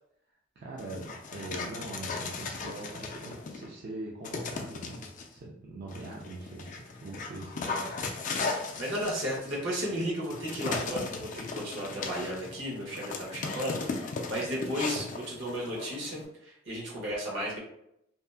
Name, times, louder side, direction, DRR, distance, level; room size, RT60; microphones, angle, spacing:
voice 1, 0.6-7.7, right 2 dB, 50° right, -4 dB, 0.4 m, -42 dB
Dog, 0.8-3.7 4.2-5.3 5.9-16.3, left 4 dB, 40° left, 0.4 m, -37 dB
voice 2, 7.6-8.0 8.7-17.6, equal, 70° right, -3 dB, 1.0 m, -34 dB
2.7 x 2.4 x 2.3 m, 0.77 s
head